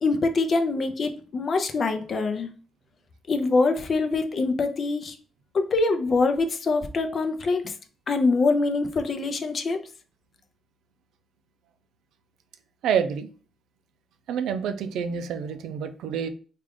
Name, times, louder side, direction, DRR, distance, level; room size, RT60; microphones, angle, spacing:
voice 1, 0.0-2.5 3.3-5.2 5.5-7.7 8.1-9.8, left 3 dB, 45° left, 7 dB, 0.5 m, -24 dB
voice 2, 12.8-13.3 14.3-16.3, right 7 dB, 80° right, 9 dB, 0.4 m, -27 dB
3.5 x 2.4 x 3.5 m, 0.39 s
cardioid pair, 90°, 0 cm